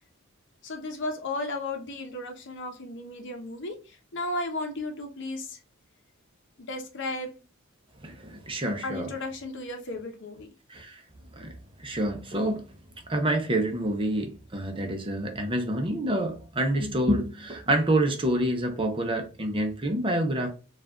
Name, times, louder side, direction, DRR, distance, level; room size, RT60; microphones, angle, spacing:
voice 1, 0.6-3.7 4.1-5.6 6.7-7.3 8.8-10.5, left 2 dB, 55° left, 1.0 m, -34 dB
voice 2, 8.0-9.1 10.7-11.0 11.4-11.5 11.8-12.6 13.1-20.5, right 1 dB, 25° right, 0.7 m, -27 dB
4.6 x 2.5 x 3.6 m
head